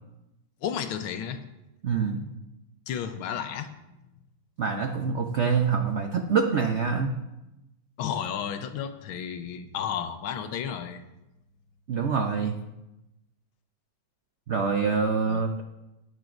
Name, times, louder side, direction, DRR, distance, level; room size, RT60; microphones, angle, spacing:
voice 1, 0.6-1.4 2.9-3.7 8.0-11.0 15.3-15.5, left 8 dB, 85° left, 9 dB, 1.6 m, -32 dB
voice 2, 1.8-2.3 4.6-7.1 11.9-12.6 14.5-15.6, right 5 dB, 85° right, 4 dB, 0.6 m, -25 dB
16.5 x 9.3 x 2.6 m, 0.96 s
omnidirectional pair, 2.2 m